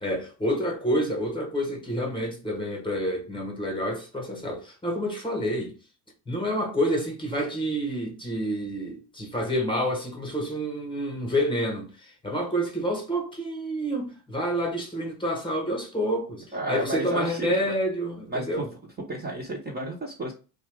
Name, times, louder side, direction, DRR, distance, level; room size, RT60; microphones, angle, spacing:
voice 1, 0.0-5.7 6.3-18.7, equal, 10° left, 1.1 m, -28 dB
voice 2, 16.5-17.7 18.3-18.6 19.1-20.3, right 2 dB, 20° right, 0.8 m, -32 dB
2.8 x 2.3 x 3.3 m
supercardioid pair, 110°, 43 cm